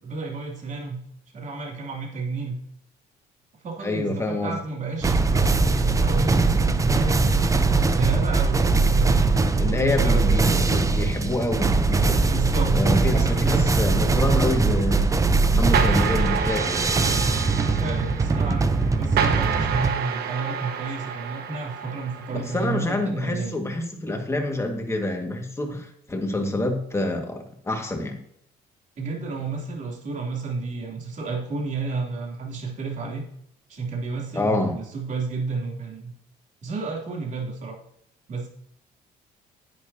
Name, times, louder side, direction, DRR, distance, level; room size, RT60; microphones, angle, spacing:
voice 1, 0.0-1.0 1.3-2.6 3.6-7.4 7.6-10.4 12.2-12.8 13.1-13.9 17.6-23.5 29.0-33.2 33.7-36.1 36.6-37.8 38.3-38.5, right 4 dB, 45° right, 0 dB, 3.1 m, -31 dB
voice 2, 3.8-4.6 9.6-12.3 12.7-15.1 15.5-16.9 22.3-28.2 34.3-34.8, left 2 dB, 15° left, 3 dB, 1.9 m, -27 dB
sound 1, 5.0-19.9, right 3 dB, 20° right, 0.7 m, -21 dB
sound 2, 15.7-22.6, right 7 dB, 70° right, 1.3 m, -29 dB
10.5 x 9.2 x 2.8 m, 0.71 s
cardioid pair, 110°, 17 cm